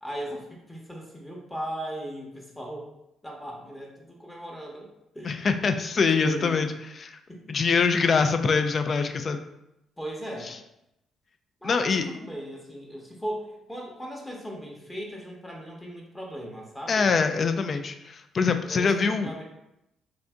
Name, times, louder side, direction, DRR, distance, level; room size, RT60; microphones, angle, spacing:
voice 1, 0.0-2.9 3.2-4.9 5.1-5.4 6.0-6.7 7.3-7.6 10.0-10.5 11.6-17.2 18.6-19.4, right 1 dB, 15° left, -1 dB, 0.8 m, -37 dB
voice 2, 5.2-6.7 7.0-7.2 7.5-9.4 11.6-12.0 16.9-19.3, left 5 dB, 50° left, 8 dB, 0.3 m, -24 dB
2.7 x 2.4 x 3.4 m, 0.85 s
supercardioid pair, 60°, 0 cm